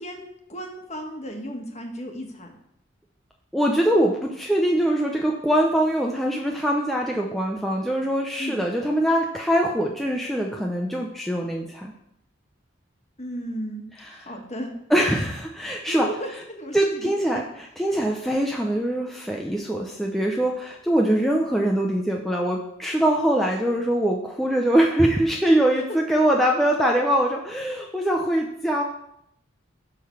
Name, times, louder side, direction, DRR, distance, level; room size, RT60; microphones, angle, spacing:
voice 1, 0.0-2.5 8.4-8.6 13.2-14.7 15.9-17.4 25.7-25.8, equal, 35° left, 2 dB, 1.5 m, -35 dB
voice 2, 3.5-11.9 14.9-16.1 16.7-17.4 17.8-28.8, right 1 dB, ahead, -1 dB, 0.6 m, -23 dB
11.0 x 3.9 x 7.0 m, 0.77 s
head